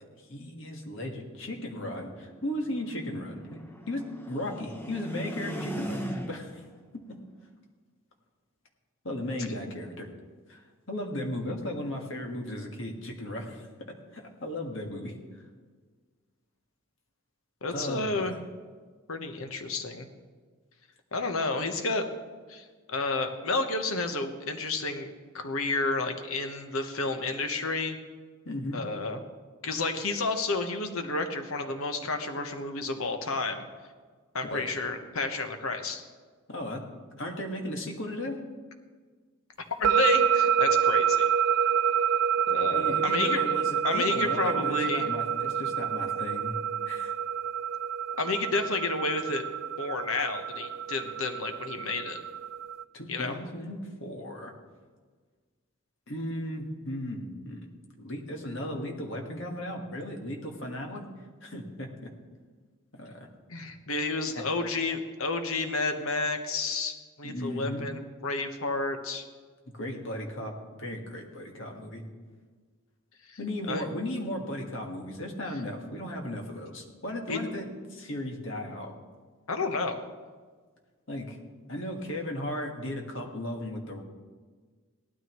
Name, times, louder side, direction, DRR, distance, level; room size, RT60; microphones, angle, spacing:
voice 1, 0.2-3.6 3.9-6.6 6.9-7.2 9.0-10.1 10.5-10.6 10.9-13.7 14.1-15.2 17.7-18.3 28.4-28.8 34.4-34.6 36.5-36.8 37.2-38.4 42.7-46.6 46.8-47.1 52.9-54.5 56.1-57.7 58.0-61.1 61.4-62.1 63.0-63.3 63.9-64.0 64.3-64.4 67.2-67.9 69.7-70.5 70.8-72.0 73.4-78.9 81.1-81.4 81.7-84.0, left 1 dB, 60° left, 2 dB, 1.7 m, -36 dB
sound 1, 1.3-6.7, equal, 10° left, 0.7 m, -39 dB
voice 2, 17.6-18.4 19.1-20.1 21.1-22.1 22.5-25.1 25.3-28.0 28.7-29.2 29.6-33.7 34.3-36.0 39.8-41.3 42.5-43.5 43.8-45.1 48.2-49.4 49.8-52.2 53.1-53.4 63.5-69.2 73.2-73.4 73.7-73.9 77.3-77.4 79.5-80.0, left 3 dB, 75° left, 6 dB, 1.1 m, -31 dB
sound 2, 39.8-52.8, right 8 dB, 60° right, 0.3 m, -27 dB
18.0 x 12.5 x 3.1 m, 1.5 s
head